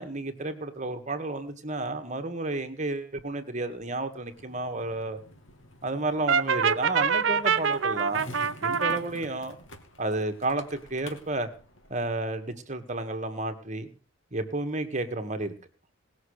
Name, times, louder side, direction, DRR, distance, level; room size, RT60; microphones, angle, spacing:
voice 1, 0.0-5.2 5.8-8.2 8.6-9.5 10.0-11.5 11.9-13.9 14.3-15.5, right 2 dB, 35° right, 7 dB, 1.8 m, -31 dB
Skateboard, 4.3-12.3, left 1 dB, 55° left, 2.4 m, -48 dB
Brass instrument, 6.3-9.0, right 6 dB, 60° right, 0.7 m, -25 dB
19.5 x 6.7 x 6.6 m, 0.38 s
head